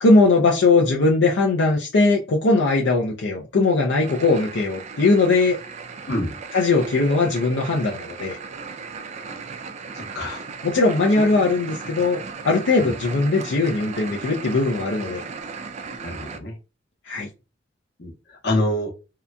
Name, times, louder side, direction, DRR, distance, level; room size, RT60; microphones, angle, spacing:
voice 1, 0.0-5.6 6.5-8.4 10.6-12.2 12.4-15.2 17.1-17.3, left 3 dB, 80° left, 0.5 m, -19 dB
sound 1, 4.0-16.4, right 5 dB, 40° right, 0.4 m, -36 dB
sound 2, 6.7-9.7, right 5 dB, 65° right, 0.7 m, -41 dB
voice 2, 9.9-10.5 11.2-11.5 12.8-12.9 16.0-16.5 18.0-18.9, left 1 dB, 65° left, 1.0 m, -27 dB
2.8 x 2.5 x 2.2 m
head